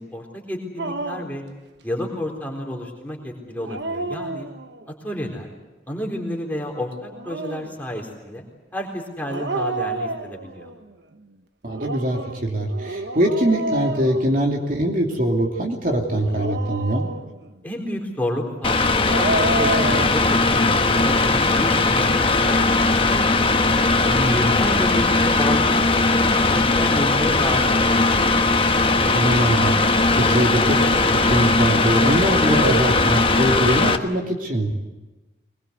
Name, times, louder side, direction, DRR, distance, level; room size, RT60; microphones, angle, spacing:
voice 1, 0.0-1.4 1.8-4.5 5.0-5.5 5.9-8.4 8.7-10.7 17.6-23.5 24.3-26.2 26.5-28.3, left 1 dB, 10° left, 0 dB, 4.0 m, -30 dB
Dog, 0.8-1.4 3.5-4.9 7.0-7.7 9.3-10.7 11.7-14.8 16.1-17.5 18.8-20.2, right 2 dB, 70° right, 1.2 m, -29 dB
voice 2, 11.6-17.1 24.1-24.4 29.0-30.8 31.1-34.7, right 1 dB, 45° right, 1 dB, 2.8 m, -22 dB
Mechanical fan, 18.6-34.0, left 3 dB, 30° left, 1.1 m, -19 dB
23.0 x 21.5 x 8.2 m, 1.1 s
head